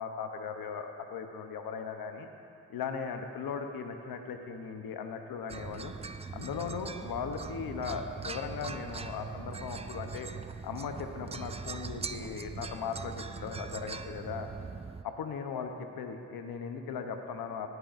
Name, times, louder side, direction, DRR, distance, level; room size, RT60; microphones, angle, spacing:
voice 1, 0.0-2.3 2.7-5.9 6.3-10.3 10.6-14.5 15.0-17.7, left 6 dB, 80° left, 6 dB, 0.9 m, -38 dB
sound 1, 5.5-15.0, right 5 dB, 20° right, 0.3 m, -41 dB
16.5 x 9.4 x 2.6 m, 2.5 s
supercardioid pair, 40°, 35 cm